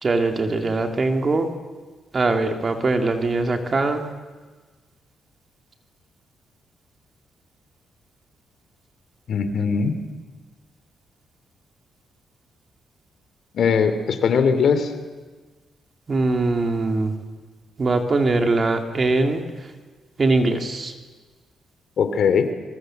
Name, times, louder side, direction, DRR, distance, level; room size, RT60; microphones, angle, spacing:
voice 1, 0.0-1.5 2.1-4.0 16.1-17.1 17.8-19.4 20.2-20.9, right 3 dB, 35° right, 5 dB, 2.9 m, -21 dB
voice 2, 9.3-10.0 13.5-14.9 22.0-22.5, left 6 dB, 65° left, 10 dB, 2.7 m, -20 dB
25.0 x 23.0 x 7.9 m, 1.4 s
cardioid pair, 85°, 0 cm